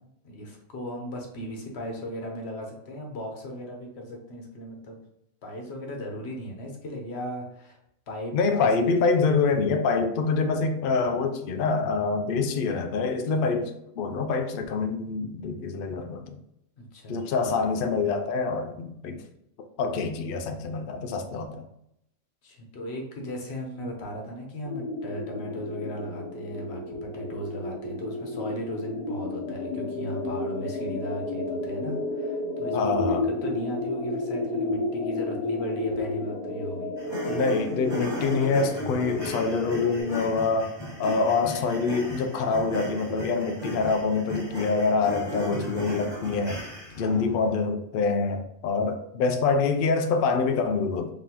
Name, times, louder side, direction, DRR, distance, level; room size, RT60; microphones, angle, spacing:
voice 1, 0.2-5.0 5.4-7.8 8.1-8.7 16.8-17.5 22.4-33.0 33.4-36.9 46.9-47.4, equal, 50° left, 1 dB, 1.1 m, -37 dB
voice 2, 8.3-16.4 17.1-19.2 19.6-21.6 32.7-33.3 37.3-46.6 47.0-51.1, left 4 dB, 85° left, 5 dB, 0.4 m, -26 dB
sound 1, 24.6-40.0, left 2 dB, 30° left, 1.2 m, -32 dB
sound 2, 37.0-47.1, equal, 20° right, 1.4 m, -36 dB
3.9 x 3.6 x 2.9 m, 0.78 s
omnidirectional pair, 1.5 m